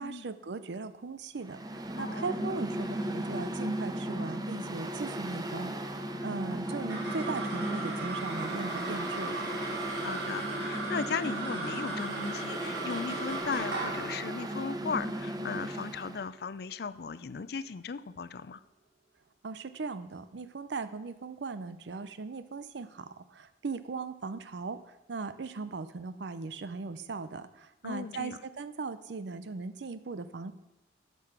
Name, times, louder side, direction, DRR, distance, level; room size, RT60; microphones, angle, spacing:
voice 1, 0.0-9.4 19.4-30.5, right 4 dB, 70° right, 13 dB, 0.5 m, -38 dB
Mechanical fan, 1.4-16.2, right 1 dB, 20° right, 0.8 m, -36 dB
voice 2, 2.0-2.5 10.0-18.6 27.8-28.4, left 5 dB, 55° left, 15 dB, 0.4 m, -37 dB
sound 1, 6.6-17.2, right 3 dB, 90° right, 3.3 m, -38 dB
12.0 x 6.8 x 5.9 m, 0.95 s
head